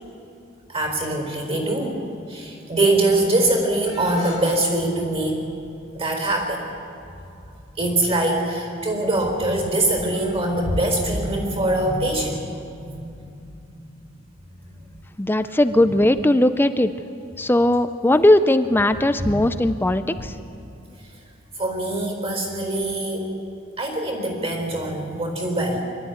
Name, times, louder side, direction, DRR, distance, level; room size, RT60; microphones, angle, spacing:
voice 1, 0.7-2.0 2.3-5.5 5.9-6.7 7.8-12.5 12.8-13.1 13.9-14.0 14.7-14.9 19.2-19.3 20.2-20.3 21.6-23.3 23.8-25.8, right 1 dB, 30° right, 3 dB, 4.2 m, -23 dB
voice 2, 15.2-16.9 17.4-20.3, left 1 dB, 10° left, 11 dB, 0.5 m, -18 dB
25.0 x 13.0 x 9.4 m, 2.6 s
head